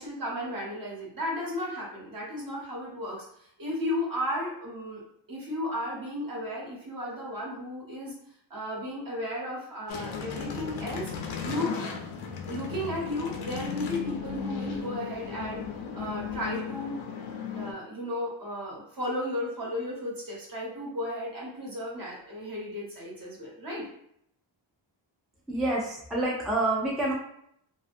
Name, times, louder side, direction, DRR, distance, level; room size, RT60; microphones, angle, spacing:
voice 1, 0.0-5.0 5.3-8.1 8.5-11.1 11.4-11.8 12.5-15.6 15.9-17.0 17.5-23.9, left 1 dB, 45° right, -3 dB, 1.0 m, -34 dB
sound 1, 9.9-17.7, left 7 dB, 85° left, 0.6 m, -36 dB
voice 2, 25.5-27.1, right 2 dB, ahead, -4 dB, 0.4 m, -27 dB
2.5 x 2.4 x 2.5 m, 0.71 s
wide cardioid pair, 125°, 46 cm